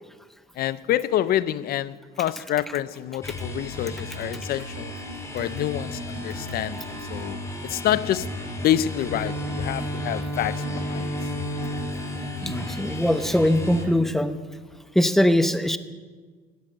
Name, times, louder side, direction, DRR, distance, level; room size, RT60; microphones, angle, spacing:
voice 1, 0.6-4.9 5.3-6.8 7.1-7.4 7.6-8.3 8.6-11.1, left 12 dB, 65° left, 0.6 m, -27 dB
sound 1, 3.2-13.8, left 1 dB, 15° left, 2.7 m, -34 dB
Bowed string instrument, 8.8-13.8, equal, 40° left, 4.0 m, -33 dB
voice 2, 12.4-14.4 14.9-15.8, left 1 dB, ahead, 0.8 m, -21 dB
14.0 x 9.8 x 7.4 m
cardioid pair, 110°, 17 cm